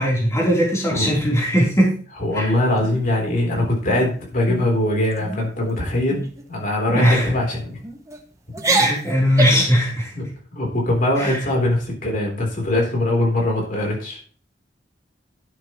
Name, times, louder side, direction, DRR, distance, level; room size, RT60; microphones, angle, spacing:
voice 1, 0.0-2.0 2.3-2.5 6.9-7.3 8.6-10.1 11.2-11.4, equal, 15° left, -4 dB, 3.5 m, -19 dB
voice 2, 2.2-7.8 10.1-10.2 10.5-14.2, left 1 dB, 50° left, -1 dB, 3.6 m, -22 dB
sound 1, 2.8-3.4 3.8-4.1 4.5-4.7 5.1-5.5 6.1-6.4 6.9-7.1 7.8-8.2 8.5-9.7, right 2 dB, 20° right, 1.3 m, -25 dB
12.0 x 9.2 x 3.1 m, 0.40 s
head